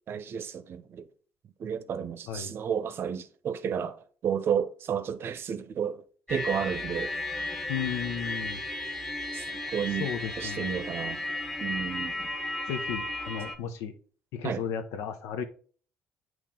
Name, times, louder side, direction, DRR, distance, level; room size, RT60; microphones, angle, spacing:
voice 1, 0.1-1.1 1.6-6.0 6.3-7.1 9.3-10.1 10.4-11.2 11.6-12.3 14.4-14.6, right 8 dB, 55° right, 0.7 m, -32 dB
sound 1, 6.3-13.6, left 2 dB, 5° left, 0.9 m, -34 dB
voice 2, 7.7-8.6 10.0-10.8 12.7-13.9 14.3-15.4, left 8 dB, 80° left, 0.8 m, -34 dB
8.4 x 3.1 x 3.7 m
supercardioid pair, 70°, 5 cm